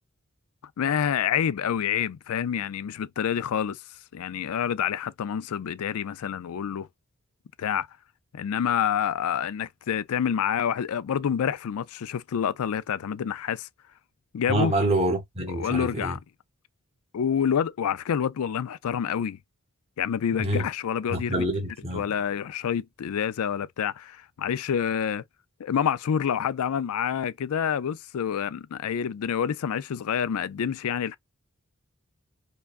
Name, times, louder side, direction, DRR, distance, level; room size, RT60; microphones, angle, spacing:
voice 1, 0.8-3.8 4.1-6.9 7.6-7.9 8.3-13.7 14.3-14.9 15.5-16.2 17.1-19.4 20.0-21.4 21.9-25.2 25.6-31.2, left 8 dB, 85° left, 0.4 m, -27 dB
voice 2, 14.5-16.2 20.4-20.6 21.1-22.0, right 1 dB, 30° right, 1.1 m, -26 dB
4.6 x 2.3 x 2.5 m
head